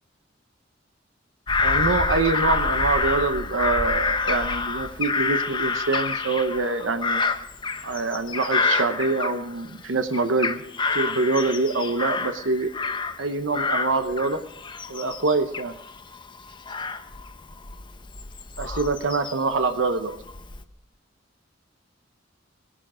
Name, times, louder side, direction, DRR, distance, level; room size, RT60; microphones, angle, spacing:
Bird vocalization bird call bird song / Crow, 1.5-9.8 10.1-13.3 13.5-19.6 20.1-20.6, left 4 dB, 25° left, 0.8 m, -27 dB
voice 1, 1.6-7.2 7.8-10.6 10.9-12.7 13.2-14.4 14.9-15.8 18.6-20.1, right 3 dB, 80° right, 8 dB, 0.9 m, -25 dB
19.5 x 11.0 x 5.0 m, 0.84 s
head